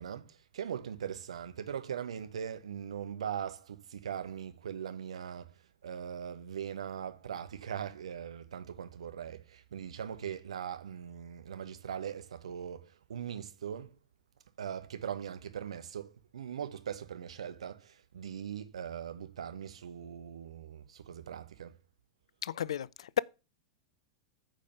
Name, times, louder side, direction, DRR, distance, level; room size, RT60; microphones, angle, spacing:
voice 1, 0.0-13.9 14.6-21.8, right 8 dB, 65° right, 1.0 m, -40 dB
voice 2, 22.4-23.2, left 10 dB, 60° left, 0.4 m, -33 dB
9.0 x 5.1 x 6.6 m
figure-of-eight pair, 95°, 3 cm